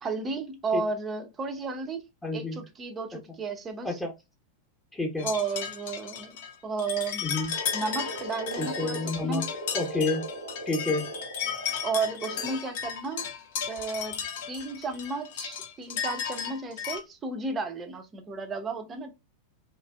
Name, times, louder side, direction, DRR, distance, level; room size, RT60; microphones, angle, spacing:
voice 1, 0.0-2.0 2.3-4.0 5.2-6.3 6.6-7.3 7.7-9.5 11.8-13.3 13.7-19.1, right 4 dB, 20° right, 0.5 m, -33 dB
voice 2, 2.2-2.6 3.8-4.1 4.9-5.3 7.2-7.5 8.6-9.4 9.7-10.2 10.7-11.1, left 2 dB, 10° left, 0.8 m, -29 dB
sound 1, 5.2-17.0, left 8 dB, 55° left, 0.6 m, -35 dB
Frog, 7.5-12.6, right 2 dB, 80° right, 0.5 m, -39 dB
2.9 x 2.4 x 2.3 m
figure-of-eight pair, 90°, 0 cm